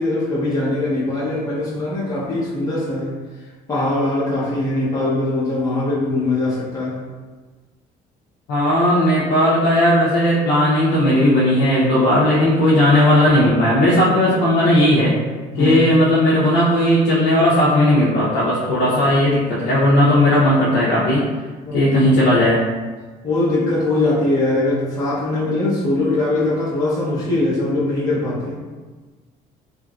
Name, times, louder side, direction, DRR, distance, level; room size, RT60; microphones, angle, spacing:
voice 1, 0.0-3.1 3.7-7.0 15.5-15.8 18.8-18.9 21.6-21.9 23.2-28.6, left 2 dB, 20° left, -9 dB, 0.9 m, -21 dB
voice 2, 8.5-15.1 15.6-21.2 21.7-22.6, left 1 dB, 85° left, -8 dB, 0.6 m, -16 dB
3.0 x 2.4 x 2.4 m, 1.3 s
cardioid pair, 110°, 17 cm